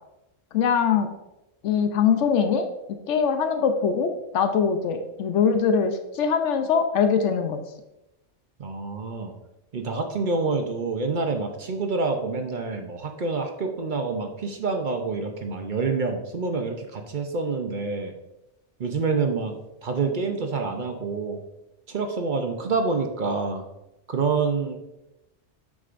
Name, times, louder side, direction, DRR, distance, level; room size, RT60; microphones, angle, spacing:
voice 1, 0.5-1.1 1.6-2.6 3.1-7.6, left 6 dB, 85° left, 7 dB, 1.0 m, -22 dB
voice 2, 8.6-9.3 9.7-18.1 18.8-21.4 21.9-23.6 24.1-24.8, right 4 dB, 50° right, 4 dB, 0.7 m, -27 dB
8.1 x 6.3 x 2.5 m, 0.91 s
omnidirectional pair, 1.2 m